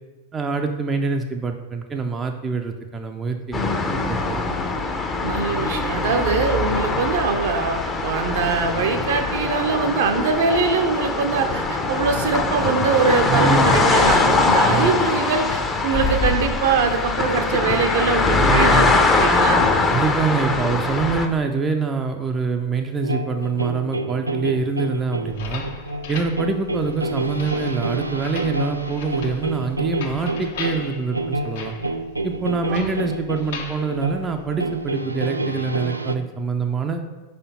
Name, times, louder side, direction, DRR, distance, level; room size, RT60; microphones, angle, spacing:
voice 1, 0.3-3.7 4.1-4.4 13.3-13.8 14.6-15.0 18.3-19.0 19.8-25.6 26.1-31.8 32.2-37.0, right 4 dB, 20° right, 4 dB, 0.5 m, -25 dB
sound 1, 3.5-21.3, left 3 dB, 20° left, 0.7 m, -22 dB
voice 2, 5.2-19.7 32.7-32.9, right 4 dB, 55° right, 6 dB, 0.7 m, -22 dB
sound 2, 23.0-36.1, right 2 dB, 85° right, 0.3 m, -28 dB
sound 3, 25.2-34.9, left 5 dB, 55° left, 0.7 m, -38 dB
5.2 x 4.3 x 5.4 m, 1.3 s
figure-of-eight pair, 90°, 0 cm